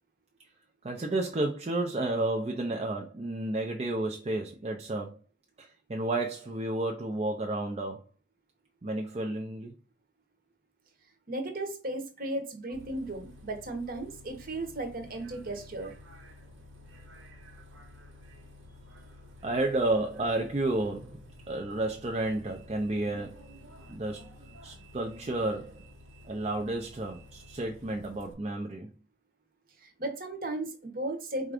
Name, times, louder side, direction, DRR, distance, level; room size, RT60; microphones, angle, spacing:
voice 1, 0.8-5.2 5.6-8.0 8.8-9.7 19.4-23.4 23.9-24.3 24.6-25.7 26.3-28.9, right 2 dB, 30° right, 0.4 m, -31 dB
voice 2, 11.3-16.0 29.8-31.5, right 2 dB, 50° right, 0.9 m, -35 dB
Bus, 12.7-28.3, left 1 dB, 90° right, 1.1 m, -51 dB
4.4 x 2.5 x 4.8 m
head